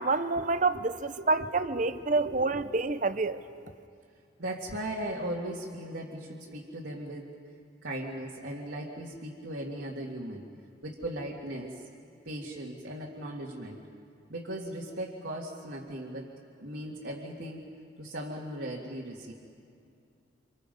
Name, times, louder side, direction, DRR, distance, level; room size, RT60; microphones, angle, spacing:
voice 1, 0.0-3.4, right 3 dB, 40° right, 0.7 m, -28 dB
voice 2, 1.2-2.7 4.4-7.3 7.8-10.5 10.8-11.8 12.2-13.8 14.3-16.3 16.6-17.6 18.0-19.3, right 1 dB, 65° right, 2.1 m, -38 dB
29.5 x 27.0 x 5.4 m
head